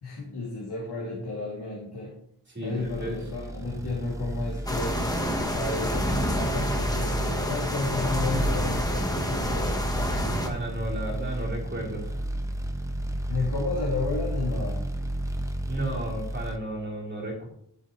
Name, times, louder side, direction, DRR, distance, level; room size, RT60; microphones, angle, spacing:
voice 1, 0.0-2.1 2.6-5.1 5.5-9.8 13.3-14.9, left 3 dB, 75° left, -5 dB, 2.7 m, -32 dB
voice 2, 2.5-3.2 10.4-12.2 15.7-17.5, right 1 dB, 25° right, -4 dB, 3.8 m, -33 dB
sound 1, 2.8-16.6, right 1 dB, 10° right, 0.8 m, -32 dB
sound 2, 4.7-10.5, equal, 10° left, 1.2 m, -28 dB
13.5 x 8.0 x 3.2 m, 0.70 s
wide cardioid pair, 175°, 40 cm